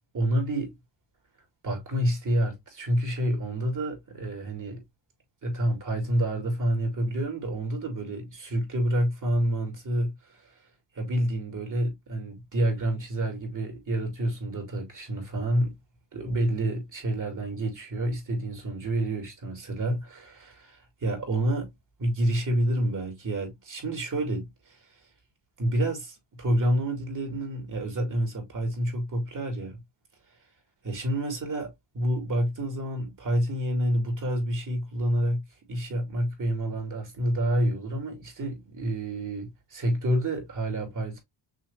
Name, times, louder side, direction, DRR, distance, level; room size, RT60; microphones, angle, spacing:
voice 1, 0.1-0.7 1.6-4.8 5.4-10.5 10.9-15.8 16.1-21.7 22.0-24.8 25.6-29.8 30.8-41.2, right 1 dB, 45° right, 2.7 m, -28 dB
6.3 x 2.9 x 2.6 m
cardioid pair, 90°, 44 cm